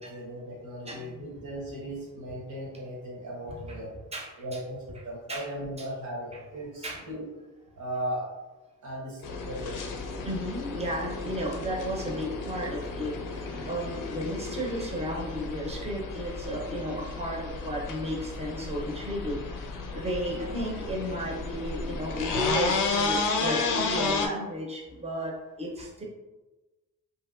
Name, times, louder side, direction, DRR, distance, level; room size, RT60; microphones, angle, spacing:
voice 1, 0.0-3.9 4.4-7.2 7.8-8.3 8.8-9.8, right 1 dB, 65° right, -5 dB, 1.1 m, -37 dB
voice 2, 0.9-1.3 3.7-3.8 4.1-4.6 5.3-5.4 5.8-5.9 6.3-6.4 6.8-7.1 10.2-19.4 19.9-25.3 25.6-26.0, equal, 20° right, -2 dB, 0.7 m, -33 dB
sound 1, 9.2-24.3, left 4 dB, 75° left, 0.5 m, -33 dB
2.8 x 2.7 x 2.4 m, 1.1 s
cardioid pair, 100°, 32 cm